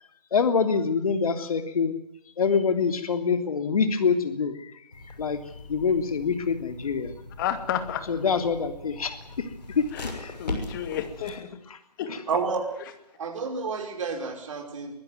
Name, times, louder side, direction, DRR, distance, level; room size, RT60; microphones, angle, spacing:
voice 1, 0.3-1.9 2.4-4.6 5.2-5.4 5.7-7.1 8.1-9.2 9.7-9.8 10.1-10.3, left 5 dB, 60° left, 8 dB, 3.1 m, -25 dB
sound 1, 4.9-11.3, left 2 dB, 90° left, 6.2 m, -40 dB
voice 2, 7.4-8.0 9.9-10.1 10.4-11.5 12.0-12.1, left 10 dB, 30° left, 9 dB, 2.5 m, -31 dB
voice 3, 12.3-12.7 13.2-14.9, right 4 dB, 50° right, 4 dB, 5.2 m, -30 dB
23.5 x 15.5 x 9.5 m, 0.79 s
hypercardioid pair, 150°, 21 cm